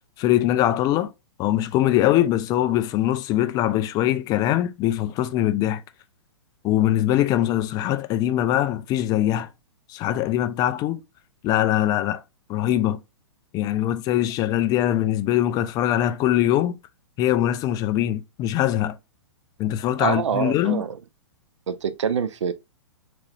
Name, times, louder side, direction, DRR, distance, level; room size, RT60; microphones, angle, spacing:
voice 1, 0.2-1.1 1.4-5.8 6.6-9.5 9.9-11.0 11.4-12.2 12.5-13.0 13.5-16.7 17.2-19.0 19.6-20.8, left 13 dB, 25° left, 0.3 m, -22 dB
voice 2, 20.0-21.0 21.7-22.5, right 7 dB, 75° right, 0.5 m, -25 dB
3.9 x 3.0 x 2.6 m
hypercardioid pair, 120°, 16 cm